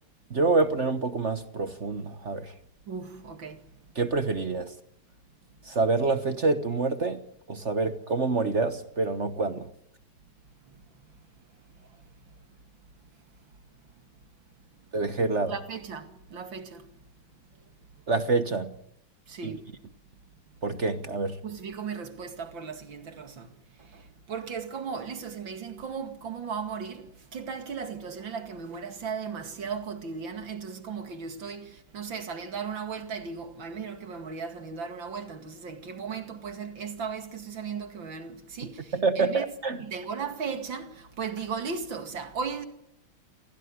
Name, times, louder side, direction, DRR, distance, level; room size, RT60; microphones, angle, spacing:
voice 1, 0.3-2.5 3.9-4.7 5.7-7.2 7.5-9.7 14.9-15.5 18.1-18.7 19.4-19.6 20.6-21.4 38.9-39.8, right 3 dB, 40° right, 1.3 m, -27 dB
voice 2, 2.9-3.6 15.5-16.8 19.3-19.6 21.4-23.5 23.8-24.0 24.3-39.5 39.8-42.7, right 6 dB, 65° right, 3.0 m, -36 dB
28.0 x 17.5 x 9.8 m
omnidirectional pair, 2.2 m